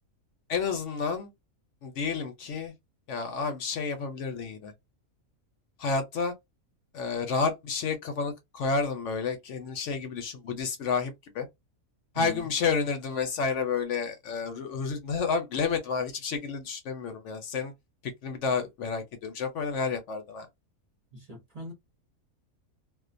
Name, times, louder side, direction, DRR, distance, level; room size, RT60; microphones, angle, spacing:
voice 1, 0.5-1.3 1.8-2.7 3.1-4.7 5.8-6.3 6.9-11.5 12.1-17.7 18.2-20.5, left 5 dB, 65° left, 0.9 m, -30 dB
voice 2, 12.1-12.5 21.1-21.7, equal, 35° right, 0.7 m, -42 dB
2.4 x 2.2 x 2.5 m
omnidirectional pair, 1.5 m